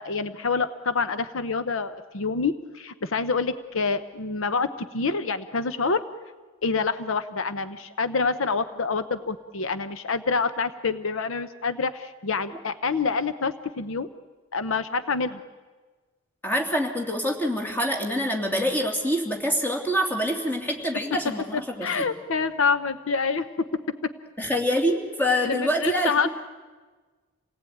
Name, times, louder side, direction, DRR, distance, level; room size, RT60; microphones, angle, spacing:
voice 1, 0.0-6.0 6.6-14.1 14.5-15.4 21.5-23.5 25.4-26.3, left 4 dB, 65° left, 12 dB, 0.8 m, -27 dB
voice 2, 16.4-21.9 24.4-26.3, equal, 10° left, 2 dB, 3.0 m, -25 dB
28.0 x 18.5 x 9.3 m, 1.3 s
head